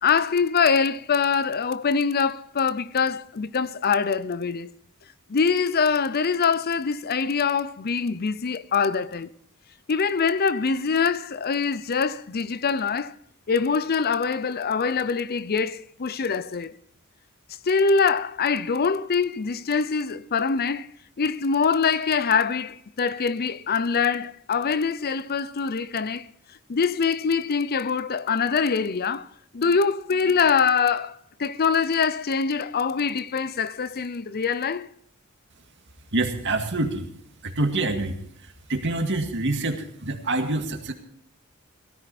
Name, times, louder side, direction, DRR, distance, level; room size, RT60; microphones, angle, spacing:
voice 1, 0.0-4.7 5.3-9.3 9.9-13.1 13.5-16.7 17.7-20.9 21.2-26.3 26.7-29.3 29.5-34.9, left 5 dB, 45° left, 0.6 m, -24 dB
voice 2, 36.1-37.1 37.4-38.2 38.7-40.9, right 2 dB, 55° right, 2.1 m, -26 dB
17.5 x 13.5 x 4.2 m
head